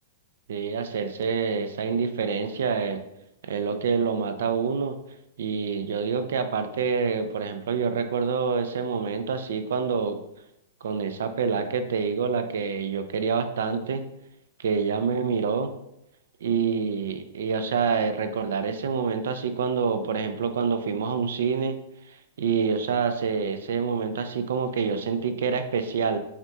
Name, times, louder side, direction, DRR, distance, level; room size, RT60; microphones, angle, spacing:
voice 1, 0.5-3.0 3.4-5.0 5.4-10.2 10.8-14.0 14.6-15.7 16.4-21.8 22.1-26.2, right 5 dB, 75° right, 8 dB, 0.4 m, -27 dB
5.7 x 2.9 x 2.3 m, 0.82 s
supercardioid pair, 170°, 0 cm